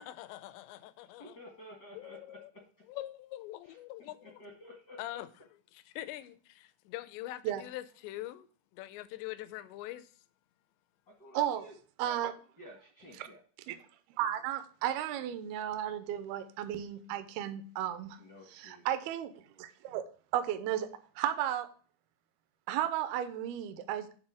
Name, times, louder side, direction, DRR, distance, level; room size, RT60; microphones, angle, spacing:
voice 1, 0.0-1.4 1.9-2.5 2.9-4.4 5.0-5.3 5.7-8.5 8.7-10.1, left 15 dB, 85° left, 2.8 m, -43 dB
voice 2, 1.2-2.6 3.6-3.8 4.2-5.2 11.1-11.7 12.0-12.2 12.6-13.4 18.2-18.9, left 1 dB, 65° left, 1.0 m, -52 dB
voice 3, 11.3-11.7 12.0-12.3 13.2-13.3 13.7-13.8 14.2-18.2 18.5-19.3 19.6-20.1 20.3-20.9 21.2-21.7 22.7-24.1, right 11 dB, 80° right, 2.4 m, -34 dB
8.9 x 3.7 x 6.2 m
omnidirectional pair, 5.1 m